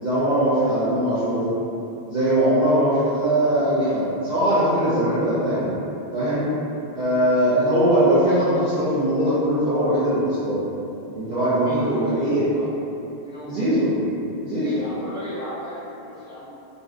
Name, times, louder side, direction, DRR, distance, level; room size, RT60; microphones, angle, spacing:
voice 1, 0.0-1.5 2.1-5.7 6.1-6.5 6.9-10.6 11.1-12.5 13.5-13.9 14.4-14.7, right 1 dB, 55° right, -12 dB, 0.7 m, -21 dB
voice 2, 11.6-12.7 13.2-13.6 14.6-16.5, equal, 5° right, -13 dB, 0.8 m, -36 dB
2.5 x 2.1 x 3.5 m, 2.9 s
omnidirectional pair, 1.0 m